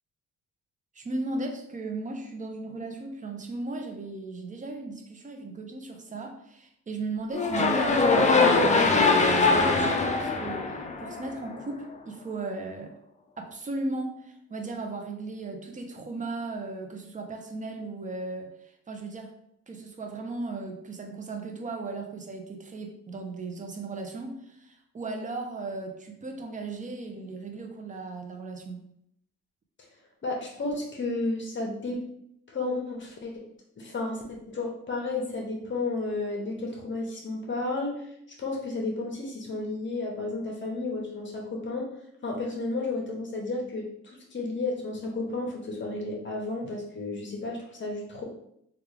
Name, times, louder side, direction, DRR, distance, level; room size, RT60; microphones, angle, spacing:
voice 1, 0.9-12.9 13.4-19.3 19.7-28.9, right 3 dB, 25° right, 3 dB, 0.6 m, -36 dB
sound 1, 7.3-11.5, left 3 dB, 25° left, 0.5 m, -22 dB
voice 2, 30.2-32.0 32.5-33.3 33.8-37.9 38.4-41.9 42.2-48.2, left 2 dB, 40° left, 0 dB, 0.9 m, -32 dB
3.3 x 2.4 x 3.3 m, 0.74 s
cardioid pair, 90°, 30 cm